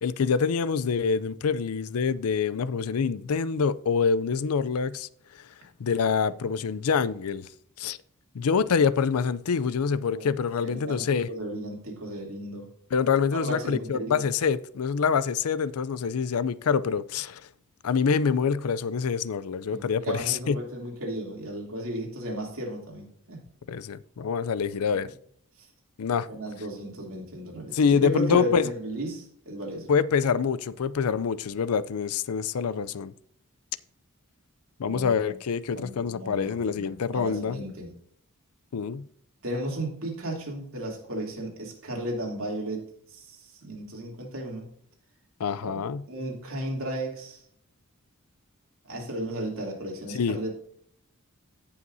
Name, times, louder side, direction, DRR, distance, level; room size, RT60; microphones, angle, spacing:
voice 1, 0.0-5.1 5.8-7.5 7.8-8.0 8.3-11.3 12.9-17.4 17.8-20.6 23.7-25.1 26.0-26.3 27.7-28.6 29.9-33.1 34.8-37.6 38.7-39.1 45.4-46.0 50.1-50.4, left 6 dB, 80° left, 0.5 m, -26 dB
voice 2, 10.6-12.7 13.3-14.3 19.7-23.4 24.6-25.1 25.6-25.7 26.3-29.9 34.8-35.4 35.7-37.9 39.4-44.7 45.6-47.4 48.8-50.5, right 1 dB, 65° right, 2.9 m, -35 dB
17.0 x 5.7 x 2.7 m
head